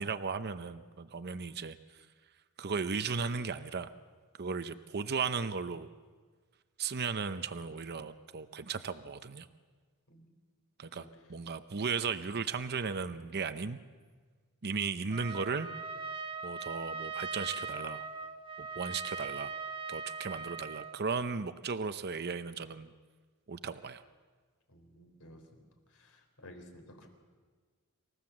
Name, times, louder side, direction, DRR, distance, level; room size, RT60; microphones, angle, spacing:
voice 1, 0.0-1.8 2.6-3.9 4.4-5.9 6.8-9.5 10.8-13.8 14.6-15.7 16.4-18.1 18.6-19.6 19.9-22.9 23.5-24.0, right 5 dB, 50° right, 11 dB, 0.7 m, -36 dB
Trumpet, 15.1-21.0, right 4 dB, 25° right, 1.3 m, -40 dB
voice 2, 24.7-25.4 25.9-27.1, left 1 dB, 75° left, 5 dB, 4.1 m, -54 dB
27.0 x 15.5 x 7.3 m, 1.5 s
head